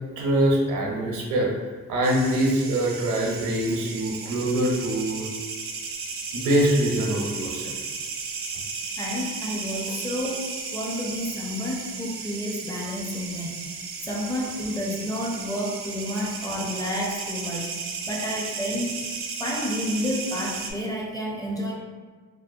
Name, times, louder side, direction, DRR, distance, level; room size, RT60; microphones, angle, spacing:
voice 1, 0.2-5.3 6.3-7.7, right 1 dB, 85° right, -1 dB, 0.7 m, -24 dB
sound 1, 2.0-20.7, right 4 dB, 45° right, 0.4 m, -35 dB
voice 2, 9.0-13.6 14.0-17.7 18.1-19.0 19.4-21.7, equal, 10° left, -2 dB, 0.5 m, -30 dB
2.6 x 2.1 x 2.5 m, 1.5 s
cardioid pair, 90°, 30 cm